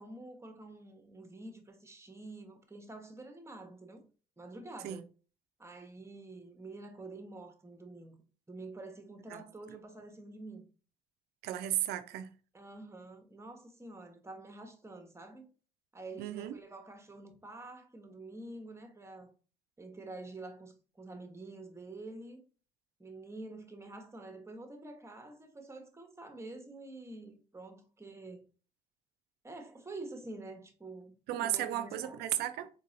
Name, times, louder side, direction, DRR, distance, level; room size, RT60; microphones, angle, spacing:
voice 1, 0.0-4.1 4.4-5.1 5.6-8.2 8.5-10.7 12.5-15.5 15.9-19.3 19.8-22.4 23.0-28.5 29.4-31.2 31.4-32.2, right 2 dB, 15° right, 0.9 m, -47 dB
voice 2, 11.4-12.3 16.2-16.6 31.3-32.7, right 13 dB, 60° right, 0.4 m, -34 dB
3.9 x 2.8 x 2.6 m
hypercardioid pair, 50°, 18 cm